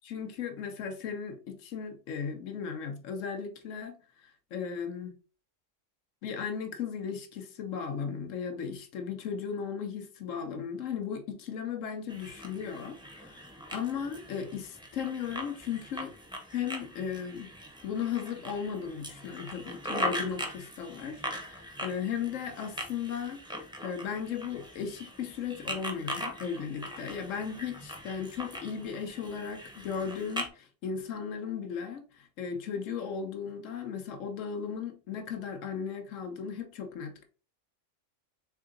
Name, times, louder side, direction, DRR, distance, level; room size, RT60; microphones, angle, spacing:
voice 1, 0.0-5.2 6.2-16.1 16.5-17.5 17.8-37.2, left 7 dB, 90° left, 1.1 m, -36 dB
sound 1, 12.1-30.5, equal, 5° right, 0.7 m, -40 dB
3.8 x 3.6 x 3.7 m
omnidirectional pair, 1.3 m